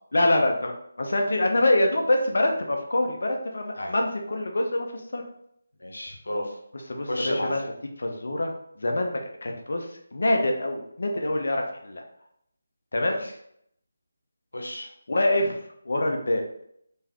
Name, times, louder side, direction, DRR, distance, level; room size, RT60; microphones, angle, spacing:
voice 1, 0.1-5.2 6.9-7.7 8.0-12.0 12.9-13.2 15.1-15.6 15.8-16.4, left 1 dB, 70° left, 2 dB, 0.8 m, -25 dB
voice 2, 5.8-6.5 7.1-7.6 13.0-13.3 14.5-14.9, left 1 dB, 90° left, 1 dB, 1.1 m, -31 dB
3.8 x 3.1 x 3.0 m, 0.71 s
figure-of-eight pair, 165°, 0 cm